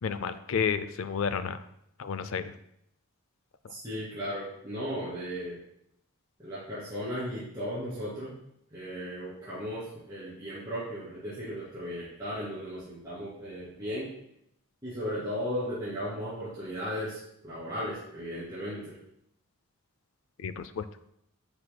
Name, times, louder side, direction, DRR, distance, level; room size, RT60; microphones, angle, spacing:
voice 1, 0.0-1.6 2.0-2.6 3.6-3.7 20.4-20.9, left 6 dB, 65° left, 13 dB, 0.4 m, -31 dB
voice 2, 3.7-5.6 6.4-8.3 8.7-14.1 14.8-18.9, equal, 15° right, -13 dB, 2.5 m, -36 dB
9.7 x 6.0 x 2.2 m, 0.76 s
head